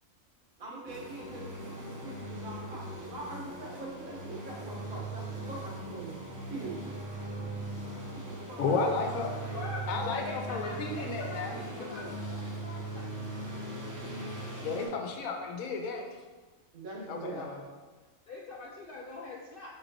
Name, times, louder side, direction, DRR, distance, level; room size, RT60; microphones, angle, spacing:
voice 1, 0.6-6.2 6.5-6.9 8.2-9.7 11.4-12.1 16.7-17.4, right 2 dB, 85° right, -3 dB, 1.5 m, -43 dB
sound 1, 0.9-14.9, right 2 dB, 30° right, 0.3 m, -40 dB
voice 2, 8.6-9.3 9.9-11.5 14.6-16.1 17.1-17.6, left 4 dB, 85° left, 3 dB, 1.1 m, -32 dB
voice 3, 9.5-13.1 17.0-17.6 18.3-19.7, left 3 dB, 70° left, -3 dB, 0.5 m, -43 dB
4.6 x 4.1 x 2.7 m, 1.3 s
omnidirectional pair, 1.4 m